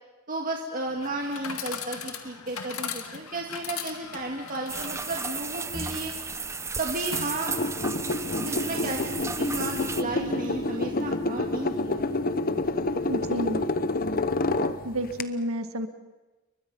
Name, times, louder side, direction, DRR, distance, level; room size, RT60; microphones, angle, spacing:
voice 1, 0.3-6.1 6.8-7.5 8.4-12.2, right 2 dB, 40° right, 0 dB, 1.9 m, -33 dB
Chatter / Coin (dropping), 0.9-7.9, left 6 dB, 80° left, 2.1 m, -40 dB
sound 1, 4.7-10.0, right 4 dB, 15° right, 0.7 m, -34 dB
sound 2, 7.5-15.2, left 2 dB, 40° left, 0.9 m, -28 dB
voice 2, 13.1-13.6 14.8-15.9, equal, 70° right, 8 dB, 1.8 m, -30 dB
29.0 x 23.0 x 5.5 m, 1.2 s
head